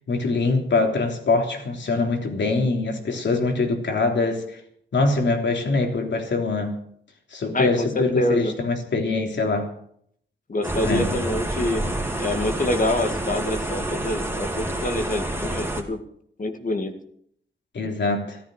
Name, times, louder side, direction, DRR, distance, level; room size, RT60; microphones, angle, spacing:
voice 1, 0.1-4.6 4.9-6.7 7.3-9.7 10.8-11.1 17.7-18.4, left 3 dB, 70° left, 3.4 m, -23 dB
voice 2, 7.5-8.5 10.5-11.8 12.2-16.0 16.4-16.9, left 1 dB, 45° left, 2.1 m, -26 dB
sound 1, 10.6-15.8, right 1 dB, 10° right, 3.1 m, -28 dB
15.0 x 13.5 x 6.5 m
cardioid pair, 85°, 19 cm